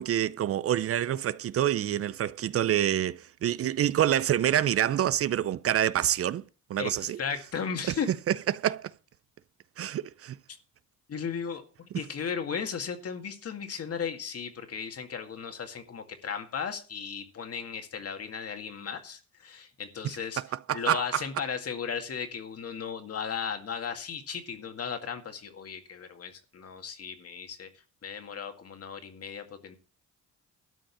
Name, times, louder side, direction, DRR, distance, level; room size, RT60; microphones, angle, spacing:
voice 1, 0.0-6.4 6.7-7.2 8.5-8.9 9.8-10.4 20.7-21.2, right 11 dB, 50° right, 0.5 m, -27 dB
voice 2, 6.8-8.1 11.1-20.4 20.7-27.7 28.0-29.8, left 6 dB, 50° left, 2.1 m, -36 dB
12.5 x 5.2 x 8.4 m
cardioid pair, 90°, 30 cm